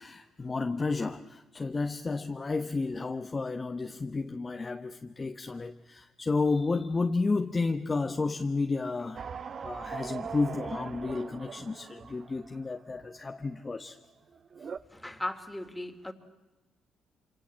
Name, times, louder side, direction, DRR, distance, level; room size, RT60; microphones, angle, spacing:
voice 1, 0.0-9.2 9.6-14.0, left 3 dB, 30° left, 6 dB, 1.2 m, -31 dB
sound 1, 9.2-13.6 14.0-14.1 14.3-14.8, right 6 dB, 50° right, 1.1 m, -41 dB
voice 2, 14.9-16.1, left 1 dB, 10° left, 8 dB, 3.0 m, -37 dB
26.5 x 26.0 x 7.7 m, 1.1 s
cardioid pair, 90°, 0 cm